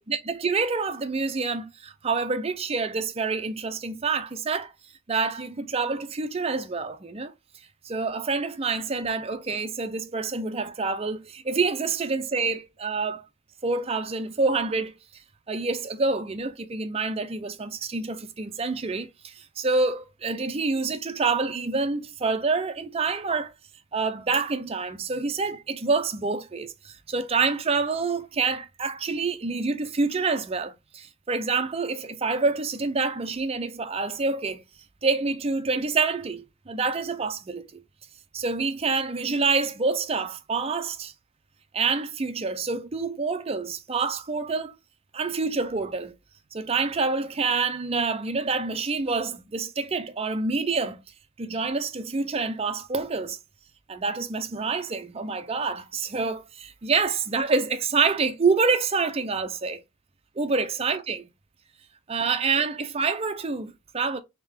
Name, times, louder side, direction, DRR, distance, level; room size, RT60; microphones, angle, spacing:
voice 1, 0.1-4.7 5.1-7.3 7.8-13.2 13.6-14.9 15.5-23.5 23.9-34.6 35.0-37.8 38.3-41.1 41.7-44.8 45.1-46.1 46.5-51.0 51.4-53.4 53.9-59.8 60.4-61.3 62.1-64.2, right 4 dB, 25° right, 0.5 m, -27 dB
3.6 x 3.5 x 3.5 m
head